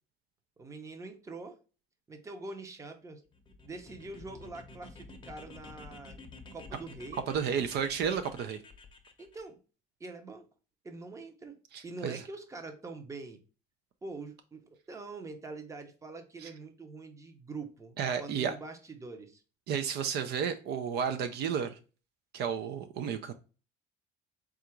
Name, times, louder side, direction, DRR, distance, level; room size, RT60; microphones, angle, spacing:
voice 1, 0.6-1.5 2.1-3.2 3.6-6.2 6.5-7.2 9.2-9.6 10.0-10.4 10.8-11.6 11.8-13.4 14.0-14.6 14.9-19.4, right 3 dB, 15° right, 0.7 m, -44 dB
sound 1, 3.3-9.4, left 3 dB, 25° left, 0.7 m, -50 dB
voice 2, 7.3-8.6 11.7-12.2 16.4-16.5 18.0-18.5 19.7-21.8 22.3-23.3, right 7 dB, 60° right, 0.5 m, -32 dB
3.8 x 2.4 x 4.4 m
cardioid pair, 140°, 19 cm